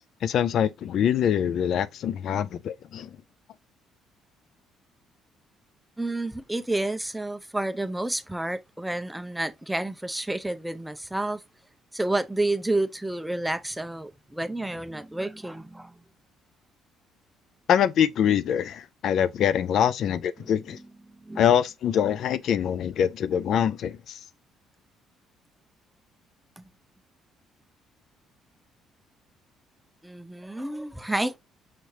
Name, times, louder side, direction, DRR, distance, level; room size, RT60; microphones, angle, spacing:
voice 1, 0.2-3.2 17.7-20.8 21.4-24.2, left 9 dB, 65° left, 0.3 m, -24 dB
voice 2, 6.0-11.4 11.9-16.0 20.4-20.5 21.2-21.5 26.6-26.7 30.0-31.4, right 2 dB, 5° right, 0.5 m, -30 dB
5.8 x 3.1 x 2.7 m
cardioid pair, 100°, 0 cm